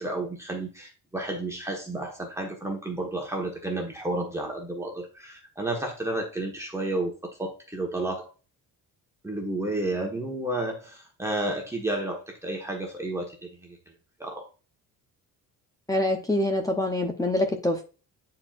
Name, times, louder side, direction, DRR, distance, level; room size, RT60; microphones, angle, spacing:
voice 1, 0.0-8.3 9.2-13.8 14.2-14.5, right 2 dB, 10° right, 0 dB, 1.3 m, -31 dB
voice 2, 15.9-17.8, left 1 dB, 10° left, 4 dB, 0.8 m, -25 dB
9.7 x 4.5 x 2.5 m, 0.33 s
cardioid pair, 170°, 36 cm